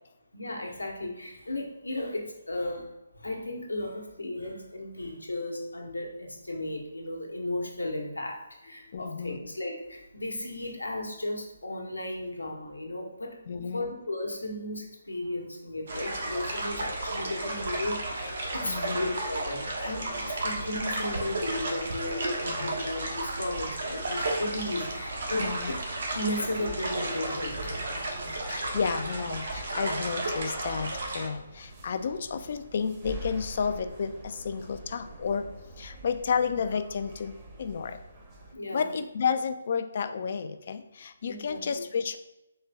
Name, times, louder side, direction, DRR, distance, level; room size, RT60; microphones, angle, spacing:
voice 1, 0.3-2.9 3.2-13.4 13.7-25.5 26.1-27.7 38.5-38.9 41.3-41.8, left 1 dB, 85° left, 1 dB, 1.1 m, -35 dB
voice 2, 8.9-9.4 13.5-13.9 18.6-19.0 22.6-22.7 25.4-25.7 28.5-35.5 35.8-38.0 38.7-42.2, left 6 dB, 50° left, 9 dB, 0.4 m, -31 dB
sound 1, 15.9-31.3, right 2 dB, 60° right, 1.0 m, -33 dB
sound 2, 20.0-38.5, right 2 dB, 25° right, 0.9 m, -47 dB
4.3 x 3.2 x 3.5 m, 0.91 s
figure-of-eight pair, 145°, 0 cm